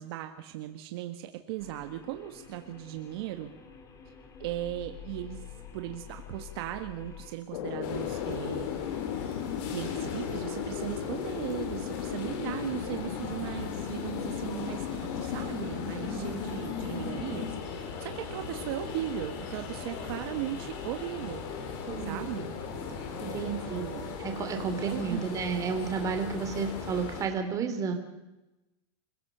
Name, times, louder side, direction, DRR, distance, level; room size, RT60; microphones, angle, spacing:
voice 1, 0.0-3.5 4.4-8.7 9.7-21.4 22.1-22.5 23.4-24.1 24.8-25.3, right 14 dB, 60° right, 6 dB, 1.5 m, -37 dB
sound 1, 1.6-7.3, left 8 dB, 20° left, 2.5 m, -48 dB
sound 2, 7.5-17.6, left 10 dB, 70° left, 1.5 m, -36 dB
sound 3, 7.8-27.2, left 5 dB, 50° left, 4.0 m, -39 dB
voice 2, 16.0-16.3 21.9-22.3 23.2-23.8 24.2-27.9, right 5 dB, 25° right, 6 dB, 2.9 m, -32 dB
28.0 x 16.5 x 6.8 m, 1.0 s
supercardioid pair, 160°, 15 cm